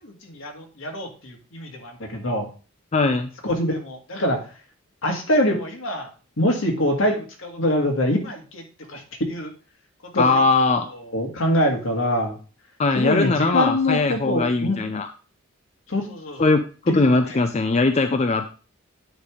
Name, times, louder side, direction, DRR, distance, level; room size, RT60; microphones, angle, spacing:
voice 1, 0.0-2.5 3.4-4.4 5.0-6.1 6.4-8.6 8.9-9.5 10.0-10.4 11.1-12.4 13.0-14.8 15.9-16.5 16.9-17.4, left 1 dB, 75° left, 2 dB, 1.8 m, -24 dB
voice 2, 2.9-3.3 10.2-10.9 12.8-15.1 16.4-18.5, left 3 dB, 35° left, 8 dB, 0.4 m, -20 dB
9.1 x 3.5 x 4.8 m, 0.37 s
head